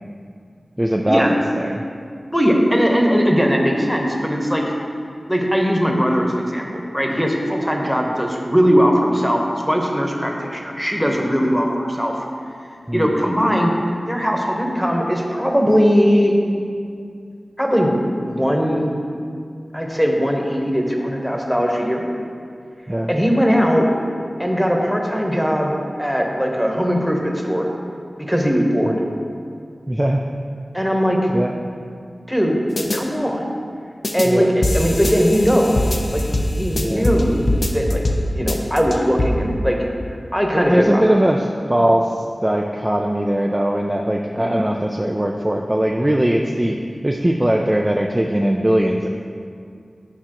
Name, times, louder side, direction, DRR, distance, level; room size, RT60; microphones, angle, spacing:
voice 1, 0.8-1.8 12.9-13.1 22.9-23.1 28.8-29.0 29.9-30.2 31.3-31.5 34.2-34.5 36.8-37.1 40.5-46.8 47.0-49.1, right 1 dB, 15° right, 0 dB, 0.4 m, -20 dB
voice 2, 2.3-4.6 5.3-12.2 12.9-13.7 14.1-16.3 17.6-18.9 19.7-22.0 23.1-23.9 24.4-27.7 28.2-28.9 30.7-31.2 32.3-32.6 32.9-33.5 34.1-35.8 36.1-36.2 36.6-37.4 37.7-38.0 38.3-39.8 40.1-41.0 44.3-44.6, equal, ahead, 0 dB, 1.0 m, -19 dB
sound 1, 32.8-33.0 34.0-34.3 34.6-37.2 37.5-38.2 38.5-39.3, left 1 dB, 55° left, 0.6 m, -21 dB
9.9 x 5.5 x 3.0 m, 2.3 s
wide cardioid pair, 70°, 0 cm